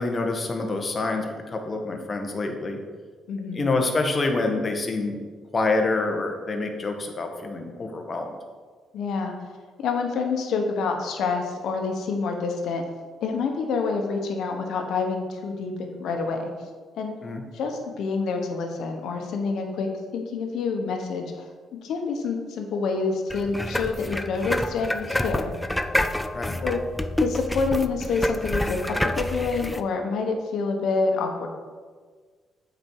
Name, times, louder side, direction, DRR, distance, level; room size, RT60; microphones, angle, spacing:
voice 1, 0.0-2.8 3.5-5.2 5.5-8.4 17.2-17.4 26.3-26.6, left 3 dB, 35° left, 4 dB, 1.2 m, -27 dB
voice 2, 3.3-3.7 8.9-9.3 9.8-12.8 13.2-16.5 16.9-17.1 17.5-19.9 20.1-25.5 26.6-26.8 27.2-31.5, left 4 dB, 75° left, 4 dB, 1.1 m, -27 dB
sound 1, 23.3-29.8, left 1 dB, 10° left, 0.4 m, -28 dB
7.8 x 5.2 x 4.6 m, 1.5 s
cardioid pair, 90°, 0 cm